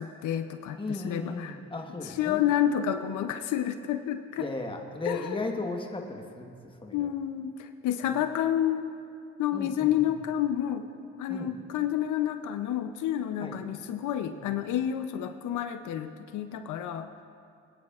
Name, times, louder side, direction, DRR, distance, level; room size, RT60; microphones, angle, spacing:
voice 1, 0.0-1.6 2.0-4.5 5.1-5.4 6.9-8.9 9.4-10.9 11.2-17.1, left 10 dB, 80° left, 8 dB, 0.6 m, -29 dB
voice 2, 0.7-2.4 4.4-6.5 6.8-7.1 8.0-8.2 9.5-9.9 11.3-11.5 13.4-13.6 14.3-14.5, left 2 dB, 15° left, 2 dB, 1.2 m, -36 dB
23.5 x 9.7 x 2.4 m, 2.4 s
cardioid pair, 90°, 30 cm